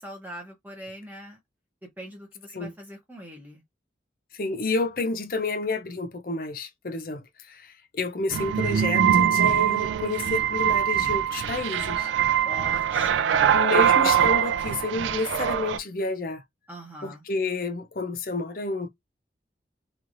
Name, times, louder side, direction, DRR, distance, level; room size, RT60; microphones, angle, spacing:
voice 1, 0.0-1.4 1.8-3.6 12.4-13.7 16.7-17.2, equal, 10° right, 0.7 m, -42 dB
voice 2, 4.3-12.1 13.5-16.4 17.0-18.9, left 3 dB, 50° left, 0.5 m, -30 dB
sound 1, 8.3-15.8, right 9 dB, 90° right, 0.3 m, -23 dB
3.0 x 2.5 x 2.5 m
head